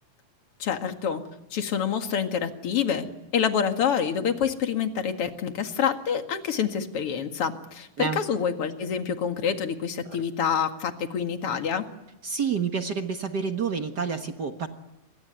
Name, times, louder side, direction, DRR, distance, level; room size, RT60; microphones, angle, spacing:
voice 1, 0.6-1.2 1.5-3.1 3.3-11.8, left 7 dB, 45° left, 6 dB, 2.5 m, -27 dB
voice 2, 12.2-14.7, right 6 dB, 60° right, 6 dB, 1.0 m, -28 dB
27.5 x 23.5 x 9.3 m, 0.92 s
omnidirectional pair, 4.1 m